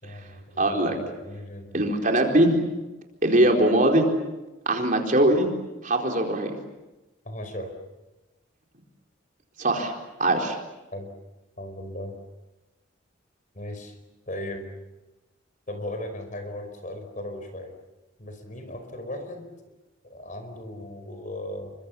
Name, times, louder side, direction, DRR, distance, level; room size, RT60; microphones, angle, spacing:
voice 1, 0.0-1.8 7.2-7.8 10.9-11.1 11.6-12.2 13.5-14.0 14.3-14.7 15.7-17.7 18.2-19.5 20.0-21.7, left 1 dB, 40° left, 7 dB, 4.9 m, -37 dB
voice 2, 0.6-1.0 1.7-2.6 3.2-4.1 4.7-5.5 5.8-6.5 9.6-9.9 10.2-10.6, right 1 dB, 40° right, 2 dB, 4.3 m, -21 dB
29.0 x 24.0 x 7.3 m, 1.1 s
head